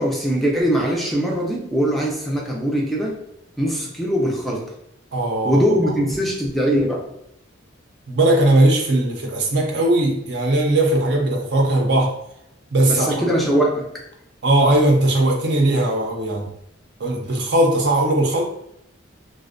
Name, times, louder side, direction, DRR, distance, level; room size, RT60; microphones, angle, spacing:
voice 1, 0.0-3.2 3.6-4.7 5.4-7.0 12.9-13.9, equal, ahead, -2 dB, 0.3 m, -21 dB
voice 2, 5.1-5.9 8.1-12.2 12.7-13.3 14.4-16.5 17.0-18.5, right 1 dB, 60° right, 1 dB, 0.5 m, -19 dB
2.5 x 2.0 x 2.5 m, 0.76 s
head